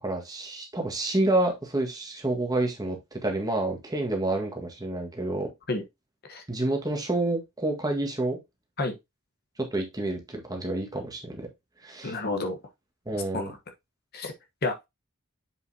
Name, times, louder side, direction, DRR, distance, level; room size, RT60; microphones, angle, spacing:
voice 1, 0.0-5.5 6.5-8.4 9.6-11.5 11.8-12.2 13.0-13.5, right 2 dB, 15° right, 1.7 m, -28 dB
voice 2, 12.0-12.6 13.3-13.5 14.1-14.3 14.6-14.9, left 2 dB, 45° left, 1.2 m, -29 dB
7.5 x 5.5 x 2.8 m
head